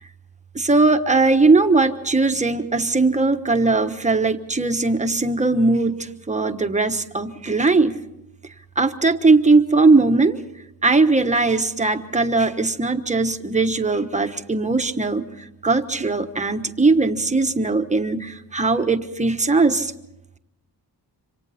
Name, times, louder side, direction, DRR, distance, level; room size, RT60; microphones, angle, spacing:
voice 1, 0.5-8.0 8.8-10.4 10.8-15.3 15.6-19.9, right 3 dB, 15° right, 7 dB, 1.1 m, -19 dB
27.5 x 25.5 x 4.2 m, 0.85 s
wide cardioid pair, 140°, 41 cm